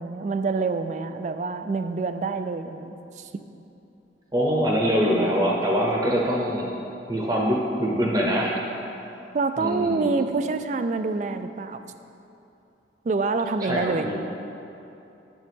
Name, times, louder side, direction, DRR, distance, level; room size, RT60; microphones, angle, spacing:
voice 1, 0.0-3.3 9.3-11.8 13.0-14.1, right 4 dB, 40° right, 9 dB, 0.3 m, -26 dB
voice 2, 4.3-6.7 7.1-8.6 9.6-10.2 13.6-14.2, equal, 20° right, -2 dB, 0.8 m, -24 dB
9.2 x 7.1 x 3.5 m, 2.8 s
head